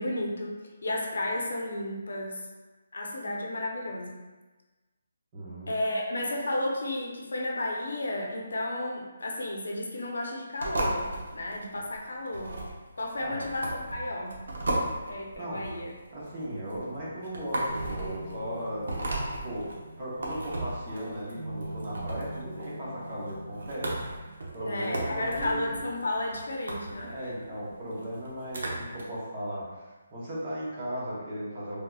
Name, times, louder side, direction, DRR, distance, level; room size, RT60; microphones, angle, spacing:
voice 1, 0.0-2.5 2.9-4.2 5.7-12.6 13.0-14.7 15.0-15.9 24.6-27.3, left 1 dB, 85° left, 0 dB, 0.6 m, -33 dB
voice 2, 5.3-5.7 13.2-13.4 15.4-15.7 16.1-19.2 19.4-19.7 20.0-24.0 24.5-25.8 27.1-31.8, equal, 20° right, -9 dB, 0.8 m, -36 dB
sound 1, 10.6-29.0, right 1 dB, 75° right, 0.7 m, -36 dB
sound 2, 17.6-25.0, right 1 dB, 40° right, 0.4 m, -44 dB
3.4 x 2.8 x 2.3 m, 1.2 s
hypercardioid pair, 175°, 0 cm